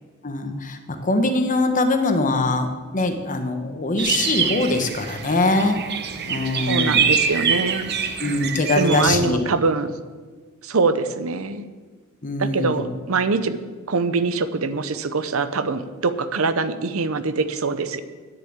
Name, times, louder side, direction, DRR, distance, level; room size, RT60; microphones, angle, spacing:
voice 1, 0.2-5.8 6.3-7.2 8.2-9.4 12.2-12.9, left 2 dB, 40° left, 6 dB, 1.1 m, -22 dB
sound 1, 4.0-9.1, right 6 dB, 50° right, 1.0 m, -24 dB
voice 2, 6.7-7.9 8.8-9.9 10.6-11.7 12.4-13.6 13.9-18.0, right 4 dB, 75° right, 13 dB, 0.7 m, -23 dB
10.0 x 7.1 x 8.7 m, 1.4 s
head